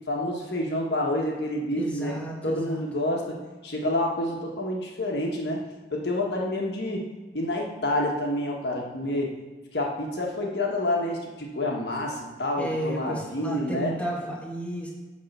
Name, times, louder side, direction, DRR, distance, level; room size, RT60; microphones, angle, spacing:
voice 1, 0.1-2.2 2.4-3.4 3.6-7.1 7.3-9.3 9.7-13.9, left 1 dB, 70° left, -1 dB, 1.4 m, -28 dB
voice 2, 1.8-2.8 12.6-14.9, equal, 10° left, -4 dB, 1.9 m, -32 dB
10.0 x 3.6 x 6.7 m, 1.3 s
head